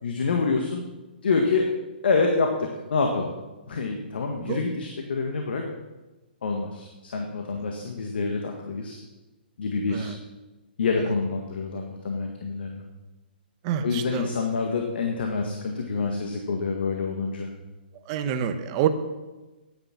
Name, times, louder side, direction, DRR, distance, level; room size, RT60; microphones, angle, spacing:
voice 1, 0.0-0.8 1.2-1.7 2.0-2.5 2.9-3.3 3.7-5.6 6.4-9.0 9.6-10.1 10.8-12.8 13.8-17.5, left 4 dB, 70° left, 2 dB, 1.6 m, -27 dB
voice 2, 13.6-14.3 18.1-18.9, right 9 dB, 30° right, 9 dB, 0.9 m, -27 dB
10.5 x 9.5 x 6.0 m, 1.1 s
hypercardioid pair, 155°, 6 cm